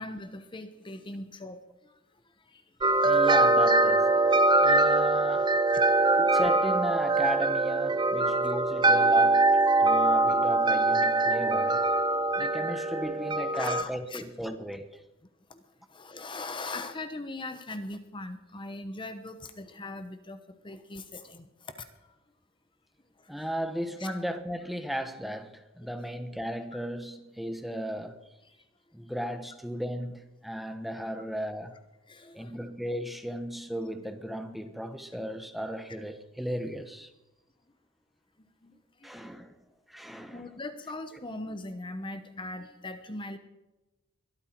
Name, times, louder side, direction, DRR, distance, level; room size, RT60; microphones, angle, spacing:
voice 1, 0.0-1.6 2.5-2.6 4.8-4.9 5.7-5.8 9.5-9.6 13.5-14.2 15.5-15.6 15.9-21.5 23.2-23.4 24.0-24.1 32.1-32.7 38.6-38.7 39.0-39.1 40.2-43.4, left 2 dB, 25° left, 1.0 m, -40 dB
sound 1, 2.8-13.8, right 2 dB, 20° right, 0.7 m, -23 dB
voice 2, 3.0-4.2 4.6-5.5 6.2-9.5 9.8-11.8 12.4-15.0 23.3-28.2 28.9-31.8 32.3-37.1 39.0-39.5 39.9-40.5, equal, ahead, 1.1 m, -35 dB
22.5 x 12.5 x 4.5 m
head